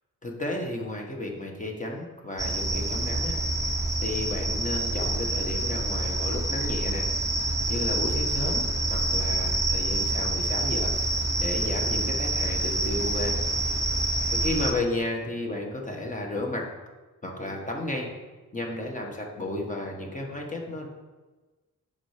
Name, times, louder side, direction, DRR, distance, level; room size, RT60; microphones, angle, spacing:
voice 1, 0.2-3.4 4.0-7.1 7.7-13.4 14.3-16.7 17.2-18.1 18.5-20.9, left 1 dB, 20° left, 1 dB, 1.4 m, -33 dB
sound 1, 2.4-14.7, right 2 dB, 10° right, 0.7 m, -27 dB
7.4 x 5.7 x 5.0 m, 1.2 s
wide cardioid pair, 130°, 34 cm